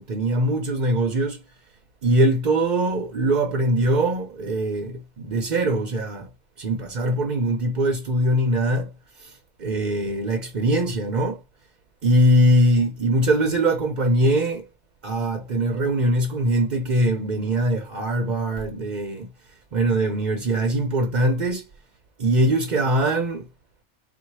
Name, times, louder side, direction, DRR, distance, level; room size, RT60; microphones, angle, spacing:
voice 1, 0.0-1.4 2.0-6.3 6.6-8.9 9.2-11.4 12.0-14.7 15.0-19.3 19.7-21.6 22.2-23.5, right 1 dB, 45° right, 0.7 m, -22 dB
4.2 x 2.3 x 4.6 m
omnidirectional pair, 1.3 m